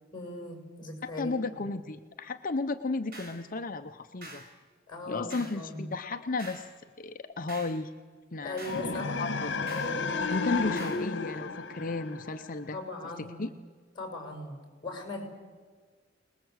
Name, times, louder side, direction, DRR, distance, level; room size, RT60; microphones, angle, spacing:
voice 1, 0.1-1.6 4.9-5.9 8.4-9.3 12.7-13.5 13.9-14.6 14.8-15.2, left 2 dB, 25° left, 2 dB, 6.8 m, -39 dB
voice 2, 1.0-4.4 5.1-6.7 7.0-7.9 8.3-9.5 10.3-12.8 13.2-13.5, left 3 dB, 45° left, 7 dB, 0.8 m, -34 dB
sound 1, 3.1-3.4 4.2-4.5 5.3-5.6 6.4-6.7 7.5-7.8 8.6-8.9 9.7-10.0 10.8-11.1, right 2 dB, 55° right, 4.6 m, -46 dB
sound 2, 8.6-12.7, left 4 dB, 60° left, 1.7 m, -33 dB
26.5 x 20.5 x 8.1 m, 1.5 s
head